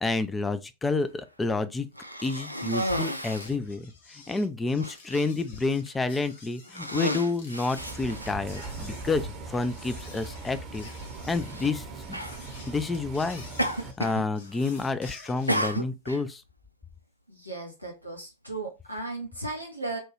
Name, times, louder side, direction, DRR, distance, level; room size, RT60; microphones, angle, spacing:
voice 1, 0.0-1.9 2.2-10.9 11.2-13.4 13.8-16.4, left 3 dB, 10° left, 0.3 m, -29 dB
Cough, 1.9-3.6 4.3-4.4 4.8-5.3 6.0-6.3 6.7-8.6 9.5-9.6 11.5-11.7 12.1-12.4 13.6-14.3 14.5-14.9 15.5-16.2, equal, 90° right, 0.3 m, -32 dB
sound 1, 3.2-15.7, left 4 dB, 60° left, 0.7 m, -50 dB
Bus, 7.8-13.9, right 3 dB, 35° right, 0.7 m, -40 dB
voice 2, 17.3-20.0, right 2 dB, 90° left, 0.7 m, -36 dB
2.9 x 2.2 x 3.1 m
figure-of-eight pair, 90°, 0 cm